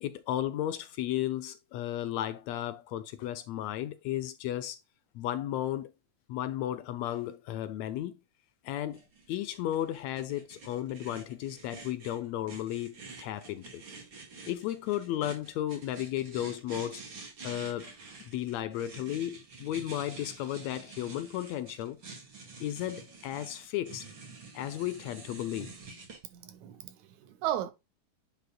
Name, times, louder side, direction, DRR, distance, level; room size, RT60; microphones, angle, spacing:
voice 1, 0.0-4.8 5.1-5.9 6.3-8.1 8.6-9.0 9.3-13.8 14.5-17.0 17.4-17.9 18.2-22.0 22.6-24.1 24.5-25.7, left 12 dB, 80° left, 1.7 m, -34 dB
sound 1, 8.9-26.2, right 4 dB, 45° right, 2.6 m, -48 dB
voice 2, 26.2-27.7, right 12 dB, 75° right, 2.2 m, -35 dB
9.3 x 5.1 x 2.2 m
omnidirectional pair, 3.4 m